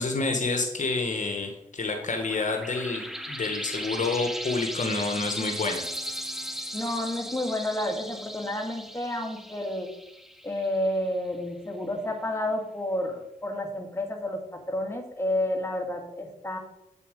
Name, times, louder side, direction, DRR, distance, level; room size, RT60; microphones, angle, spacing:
voice 1, 0.0-5.9, left 3 dB, 60° left, 4 dB, 1.1 m, -28 dB
sound 1, 1.9-11.0, equal, ahead, 1.1 m, -37 dB
voice 2, 6.7-9.9 10.4-16.6, left 1 dB, 15° left, 2 dB, 2.0 m, -30 dB
8.1 x 6.9 x 5.1 m, 0.87 s
cardioid pair, 55°, 15 cm